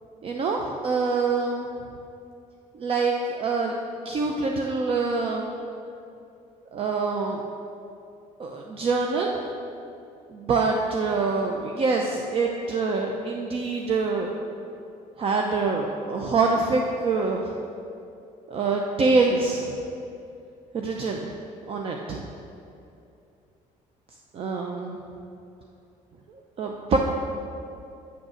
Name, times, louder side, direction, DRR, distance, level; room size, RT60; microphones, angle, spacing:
voice 1, 0.2-1.7 2.7-3.7 4.0-5.5 6.7-7.4 8.4-9.3 10.3-14.3 15.2-17.5 18.5-19.8 20.7-21.3 21.7-22.2 24.3-25.0 26.6-27.0, right 4 dB, 40° right, 1 dB, 0.6 m, -25 dB
8.2 x 6.4 x 6.3 m, 2.7 s
cardioid pair, 135°, 14 cm